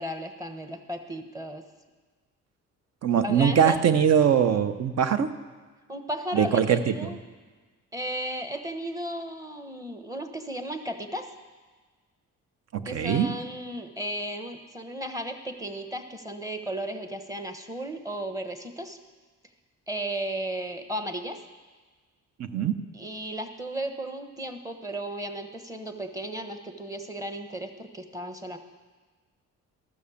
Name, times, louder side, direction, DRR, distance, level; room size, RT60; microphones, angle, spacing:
voice 1, 0.0-1.6 3.1-3.8 5.9-7.2 7.9-11.3 12.8-19.0 19.9-21.4 22.9-28.6, right 1 dB, 10° right, 6 dB, 1.1 m, -34 dB
voice 2, 3.0-5.3 6.3-7.1 12.7-13.3 22.4-22.7, right 8 dB, 60° right, 11 dB, 0.8 m, -22 dB
13.0 x 6.4 x 7.1 m, 1.4 s
cardioid pair, 90°, 30 cm